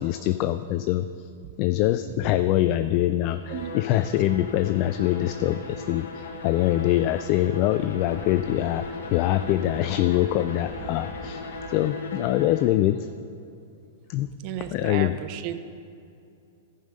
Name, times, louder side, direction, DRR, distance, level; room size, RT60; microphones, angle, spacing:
voice 1, 0.0-1.3 1.6-13.1 14.1-14.3 14.7-15.2, left 13 dB, 45° left, 10 dB, 0.3 m, -24 dB
sound 1, 1.6-11.6, equal, 20° left, 2.1 m, -46 dB
Bowed string instrument, 3.4-12.9, left 3 dB, 75° left, 1.0 m, -38 dB
voice 2, 14.4-15.6, right 11 dB, 45° right, 10 dB, 0.6 m, -34 dB
13.5 x 5.4 x 5.3 m, 2.6 s
hypercardioid pair, 105°, 0 cm